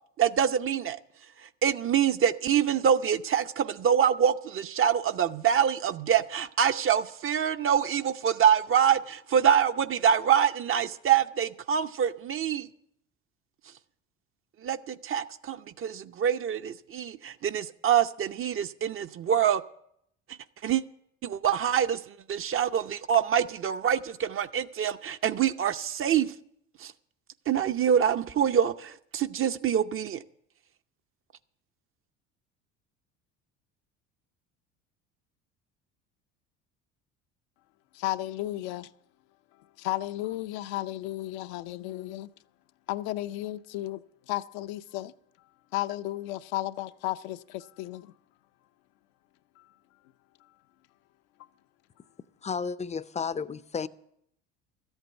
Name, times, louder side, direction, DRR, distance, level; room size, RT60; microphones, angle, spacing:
voice 1, 0.2-1.0 1.4-12.7 14.6-19.6 20.6-20.8 21.2-26.3 26.8-26.9 27.5-30.2, right 8 dB, 35° right, 0.7 m, -25 dB
voice 2, 37.9-38.9 39.6-42.3 42.9-45.1 45.7-48.1 49.6-49.7, left 15 dB, 70° left, 0.6 m, -34 dB
voice 3, 52.4-53.9, left 5 dB, 20° left, 0.5 m, -32 dB
13.5 x 8.1 x 7.9 m
hypercardioid pair, 70°, 35 cm